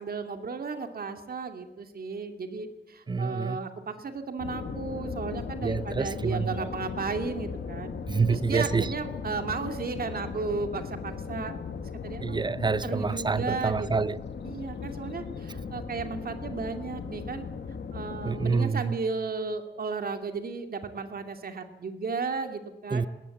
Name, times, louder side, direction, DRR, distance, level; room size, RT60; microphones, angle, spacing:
voice 1, 0.0-7.9 8.3-11.6 12.0-12.4 12.8-13.9 14.4-17.5 17.9-23.1, right 4 dB, 55° right, 2.4 m, -34 dB
voice 2, 3.1-3.6 5.6-6.7 8.1-8.9 12.2-14.2 18.2-19.0 22.9-23.1, right 4 dB, 25° right, 0.6 m, -27 dB
sound 1, 4.4-18.6, left 5 dB, 75° left, 2.1 m, -37 dB
20.0 x 19.0 x 8.5 m
wide cardioid pair, 150°, 18 cm